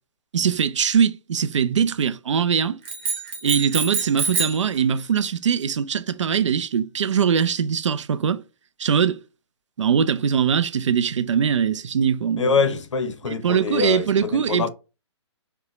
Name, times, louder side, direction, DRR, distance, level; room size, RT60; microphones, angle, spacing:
voice 1, 0.3-2.8 3.4-8.4 8.8-9.2 9.8-12.5 13.2-14.7, right 7 dB, 80° right, 0.5 m, -22 dB
sound 1, 2.9-4.7, right 4 dB, 25° right, 1.0 m, -27 dB
voice 2, 12.4-14.7, left 5 dB, 80° left, 0.8 m, -24 dB
5.0 x 2.2 x 3.1 m
hypercardioid pair, 170°, 15 cm